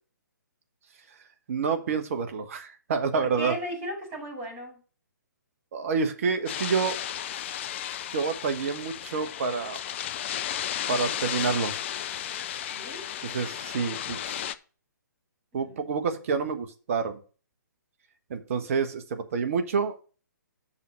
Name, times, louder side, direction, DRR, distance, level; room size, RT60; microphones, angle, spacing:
voice 1, 1.5-3.5 5.7-7.0 8.1-9.8 10.9-11.8 13.2-14.4 15.5-17.2 18.3-20.0, right 5 dB, 45° right, 1.3 m, -28 dB
voice 2, 3.1-4.8 12.7-13.0 15.5-16.0, right 1 dB, 25° right, 5.5 m, -36 dB
sound 1, 6.5-14.5, left 10 dB, 40° left, 0.5 m, -34 dB
6.9 x 5.7 x 6.1 m
figure-of-eight pair, 135°, 10 cm